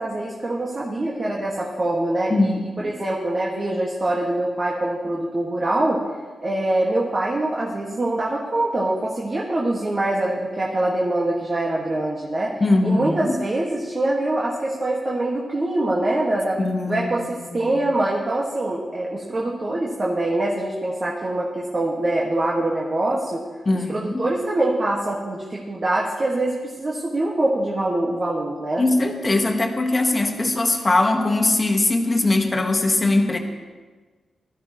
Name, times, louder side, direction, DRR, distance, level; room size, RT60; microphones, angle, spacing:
voice 1, 0.0-6.0 6.4-12.6 12.8-16.6 16.9-23.4 23.9-28.8, right 1 dB, 35° right, -4 dB, 1.8 m, -24 dB
voice 2, 2.3-2.9 12.6-13.4 16.6-17.7 23.6-24.3 28.8-33.4, left 2 dB, 30° left, 3 dB, 1.5 m, -21 dB
17.5 x 13.0 x 3.1 m, 1.4 s
cardioid pair, 100°, 0 cm